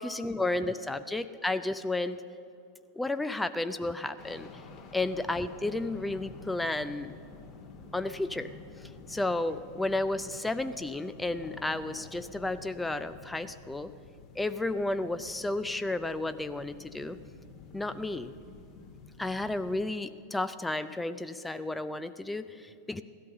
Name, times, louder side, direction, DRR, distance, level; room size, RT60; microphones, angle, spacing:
voice 1, 0.0-2.2 2.9-4.5 4.9-7.1 7.9-8.5 8.8-13.9 14.4-17.2 17.7-18.3 19.2-23.0, left 2 dB, 5° left, 12 dB, 0.5 m, -32 dB
sound 1, 4.2-19.9, left 4 dB, 40° left, 1.8 m, -50 dB
16.5 x 12.5 x 6.6 m, 2.5 s
figure-of-eight pair, 90°, 0 cm